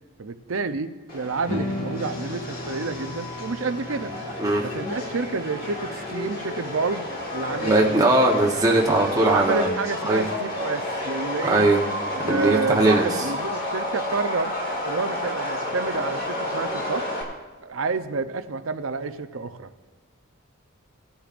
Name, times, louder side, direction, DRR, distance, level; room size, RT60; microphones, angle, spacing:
voice 1, 0.2-4.1 4.6-8.1 9.2-11.7 12.1-14.5 14.8-17.1 17.6-19.7, right 4 dB, 75° right, 10 dB, 0.6 m, -29 dB
Subway metro underground, 1.1-17.2, left 1 dB, 45° left, 2.2 m, -31 dB
sound 1, 1.4-7.7, left 2 dB, 80° left, 1.9 m, -36 dB
voice 2, 7.6-9.7 10.1-10.2 11.4-11.8 12.3-13.0, right 2 dB, 15° right, -2 dB, 1.0 m, -19 dB
17.5 x 10.5 x 2.5 m, 1.3 s
head